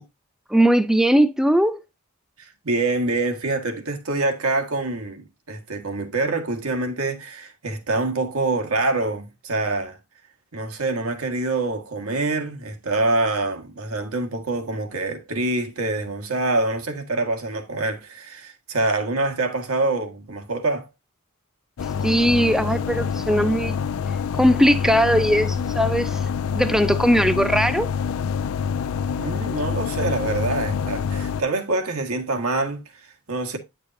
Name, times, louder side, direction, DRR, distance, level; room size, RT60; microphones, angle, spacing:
voice 1, 0.5-1.8 22.0-23.7 24.4-26.2 26.5-27.9, equal, ahead, 0.7 m, -19 dB
voice 2, 2.4-10.0 10.5-20.9 29.1-33.6, right 2 dB, 75° right, 1.7 m, -25 dB
sound 1, 21.8-31.4, left 6 dB, 70° left, 0.4 m, -26 dB
10.0 x 6.6 x 2.7 m
head